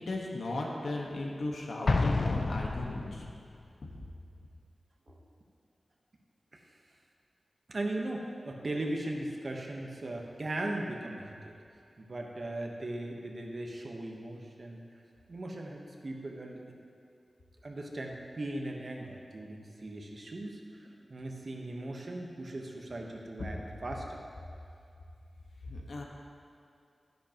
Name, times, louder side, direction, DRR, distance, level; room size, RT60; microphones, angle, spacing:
voice 1, 0.0-3.2 25.6-26.0, left 2 dB, 85° left, -1 dB, 1.3 m, -36 dB
Explosion, 1.9-3.5, left 3 dB, 55° left, 0.5 m, -29 dB
voice 2, 7.7-11.5 12.0-14.8 15.3-16.8 17.6-24.2, right 1 dB, 45° right, 1 dB, 1.1 m, -38 dB
11.5 x 10.5 x 3.0 m, 2.4 s
wide cardioid pair, 110°, 0 cm